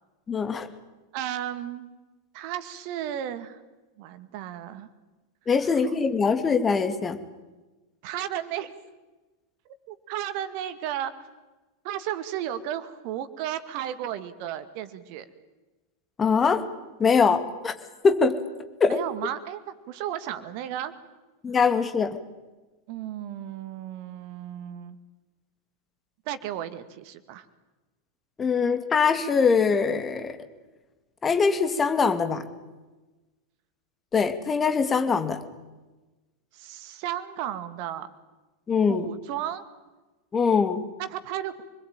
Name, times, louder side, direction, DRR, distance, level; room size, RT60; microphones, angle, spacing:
voice 1, 0.3-0.7 5.5-7.2 16.2-16.6 17.0-17.7 18.0-18.4 18.8-19.0 21.4-22.2 28.4-30.4 31.2-32.5 34.1-35.4 38.7-39.1 40.3-40.8, left 5 dB, 20° left, 9 dB, 2.7 m, -22 dB
voice 2, 1.1-1.9 2.3-3.6 4.0-4.9 5.6-5.9 8.0-8.7 9.9-11.1 11.8-15.3 18.9-20.9 22.9-25.0 26.3-27.5 36.5-38.1 38.9-39.6 41.0-41.6, right 11 dB, 45° right, 12 dB, 2.1 m, -34 dB
27.0 x 21.5 x 9.0 m, 1.2 s
figure-of-eight pair, 90°, 0 cm